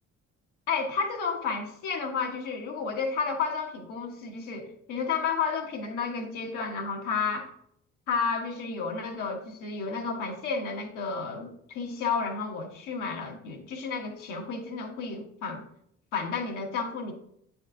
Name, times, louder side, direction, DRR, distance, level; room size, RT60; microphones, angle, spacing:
voice 1, 0.7-7.5 8.1-15.6 16.1-17.1, left 5 dB, 90° left, 1 dB, 1.4 m, -31 dB
8.9 x 4.3 x 3.7 m, 0.71 s
cardioid pair, 90°, 30 cm